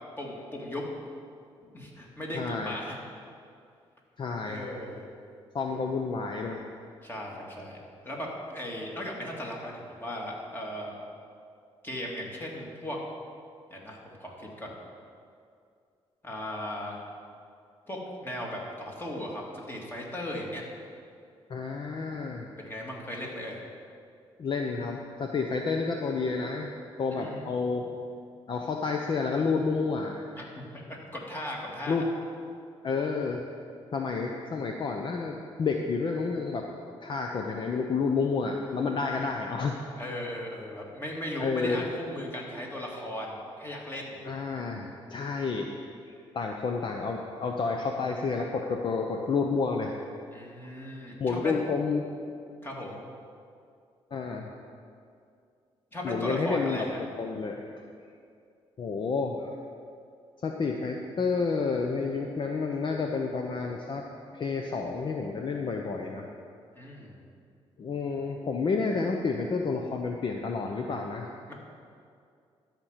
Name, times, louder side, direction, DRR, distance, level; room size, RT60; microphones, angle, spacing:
voice 1, 0.2-0.9 1.7-3.0 4.4-5.1 7.0-7.8 8.0-10.9 11.8-13.0 13.7-14.7 16.2-17.0 17.9-20.6 22.6-23.6 27.1-27.4 30.4-32.0 40.0-44.2 50.3-51.7 52.6-53.0 55.9-57.0 66.8-67.2 71.5-71.6, left 1 dB, 20° left, -2 dB, 2.4 m, -37 dB
voice 2, 2.3-2.7 4.2-4.7 5.5-6.7 21.5-22.5 24.4-26.7 27.0-27.9 28.5-30.2 31.9-32.1 32.8-33.4 33.9-36.7 37.0-39.8 41.4-41.9 44.2-45.8 46.1-49.9 51.2-52.1 54.1-54.5 56.0-57.7 58.8-59.5 60.4-64.1 64.3-66.3 67.8-71.3, left 4 dB, 50° left, 2 dB, 0.8 m, -30 dB
12.5 x 5.3 x 7.4 m, 2.3 s
cardioid pair, 85°, 10 cm